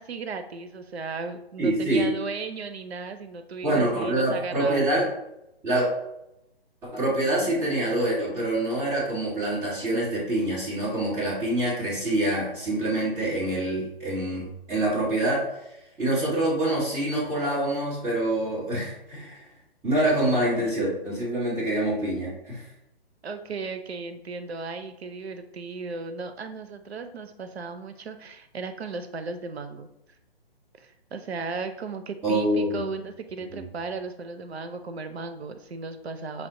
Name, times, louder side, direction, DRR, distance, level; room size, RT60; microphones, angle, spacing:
voice 1, 0.0-4.9 23.2-29.9 30.8-36.5, right 4 dB, 90° right, 8 dB, 0.6 m, -36 dB
voice 2, 1.6-2.1 3.6-5.1 5.6-5.9 6.8-15.5 16.0-19.4 19.8-22.6 32.2-32.8 33.5-33.6, right 1 dB, 10° right, -8 dB, 1.1 m, -26 dB
5.7 x 2.1 x 3.7 m, 0.84 s
hypercardioid pair, 155°, 31 cm